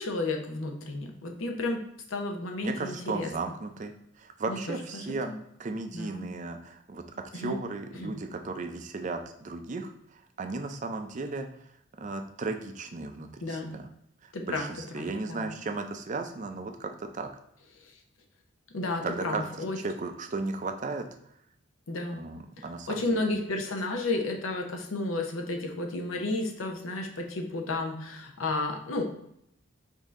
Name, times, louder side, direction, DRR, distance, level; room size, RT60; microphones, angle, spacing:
voice 1, 0.0-1.8 2.1-3.3 4.5-4.6 4.9-5.4 5.9-6.3 7.3-7.5 7.9-8.1 13.4-13.7 14.3-14.6 14.9-15.5 18.7-19.8 21.9-22.2 22.6-29.0, left 2 dB, 85° left, 3 dB, 0.8 m, -32 dB
voice 2, 2.6-3.9 4.2-5.3 5.6-7.0 7.3-9.9 10.4-11.5 12.0-13.9 14.4-17.3 19.0-19.5 19.8-21.1 22.1-23.3, right 3 dB, 35° right, 6 dB, 0.4 m, -35 dB
5.3 x 2.7 x 3.6 m, 0.75 s
head